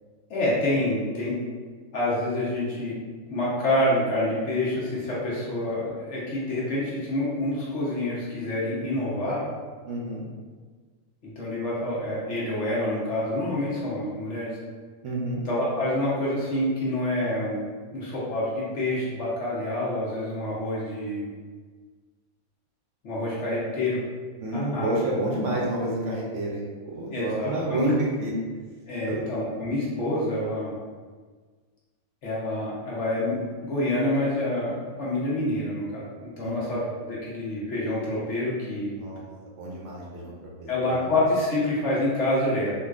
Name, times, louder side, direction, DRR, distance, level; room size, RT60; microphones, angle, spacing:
voice 1, 0.3-1.4 1.9-2.9 3.3-9.5 11.2-14.6 15.4-17.6 17.9-21.3 23.0-24.0 24.5-25.0 27.1-27.9 28.9-30.7 32.2-38.9 40.7-42.7, left 1 dB, 60° left, -7 dB, 1.1 m, -27 dB
voice 2, 9.9-10.3 15.0-15.4 24.4-28.3 29.0-29.2 36.4-36.7 39.0-39.2 39.6-40.3 40.6-41.0, right 1 dB, 70° right, -3 dB, 0.9 m, -30 dB
3.7 x 2.4 x 2.4 m, 1.5 s
omnidirectional pair, 1.5 m